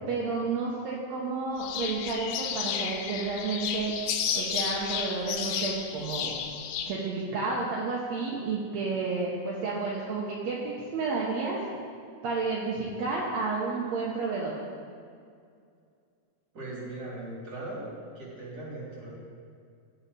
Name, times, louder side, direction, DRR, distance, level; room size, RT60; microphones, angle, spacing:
voice 1, 0.1-3.9 4.3-6.3 6.9-11.6 12.2-14.6, right 4 dB, 70° right, -4 dB, 1.7 m, -31 dB
sound 1, 1.6-6.9, left 8 dB, 85° left, 2.6 m, -32 dB
voice 2, 16.5-17.9 18.1-19.1, right 2 dB, 30° right, -5 dB, 2.7 m, -39 dB
16.5 x 5.5 x 4.1 m, 2.3 s
omnidirectional pair, 4.3 m